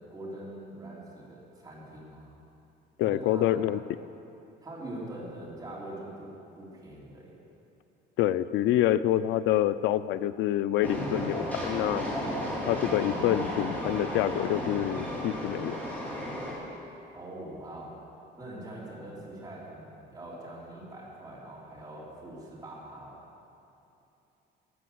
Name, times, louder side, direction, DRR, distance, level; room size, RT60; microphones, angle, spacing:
voice 1, 0.1-2.3 3.0-3.6 4.6-7.4 17.1-18.0 18.4-23.2, right 1 dB, 20° right, -6 dB, 3.3 m, -43 dB
voice 2, 3.0-3.8 8.2-12.0 12.7-15.8, left 12 dB, 85° left, 15 dB, 0.5 m, -27 dB
Train, 10.8-16.5, equal, 5° left, 3.6 m, -33 dB
15.5 x 9.4 x 7.7 m, 2.8 s
cardioid pair, 175°, 19 cm